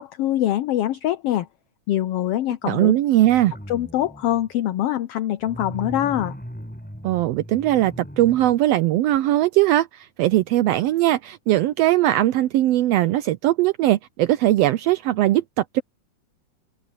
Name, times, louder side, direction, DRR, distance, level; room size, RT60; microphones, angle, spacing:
voice 1, 0.0-1.5 1.9-2.9 3.7-6.4, left 13 dB, 85° left, 1.3 m, -24 dB
voice 2, 2.6-3.5 7.0-15.8, right 14 dB, 85° right, 1.4 m, -20 dB
sound 1, 3.2-4.5 5.4-8.6 9.1-9.2, equal, 5° left, 6.8 m, -38 dB
omnidirectional pair, 3.5 m